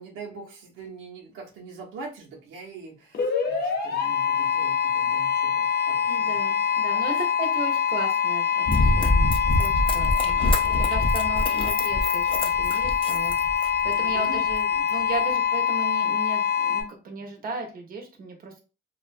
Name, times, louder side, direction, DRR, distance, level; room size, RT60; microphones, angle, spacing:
voice 1, 0.0-6.4 7.1-7.3 14.0-14.4, right 4 dB, 85° right, -2 dB, 0.7 m, -42 dB
sound 1, 3.1-16.8, left 7 dB, 55° left, 0.7 m, -24 dB
voice 2, 6.1-13.4 13.8-18.6, right 2 dB, 50° right, 2 dB, 0.7 m, -36 dB
Run, 8.7-13.9 14.5-14.6, left 1 dB, 25° left, 0.4 m, -25 dB
2.4 x 2.2 x 2.4 m, 0.32 s
cardioid pair, 90°, 20 cm